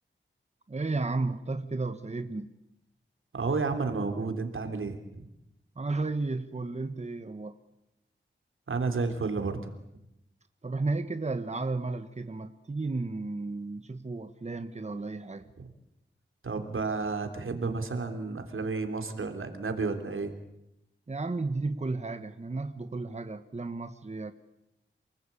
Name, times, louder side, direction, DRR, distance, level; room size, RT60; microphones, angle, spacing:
voice 1, 0.7-2.5 5.7-7.6 10.6-15.5 21.1-24.3, right 3 dB, 35° right, 9 dB, 1.3 m, -33 dB
voice 2, 3.3-5.0 8.7-9.6 16.4-20.3, right 4 dB, 85° right, 6 dB, 3.4 m, -31 dB
28.5 x 20.0 x 8.6 m, 0.86 s
wide cardioid pair, 90°, 20 cm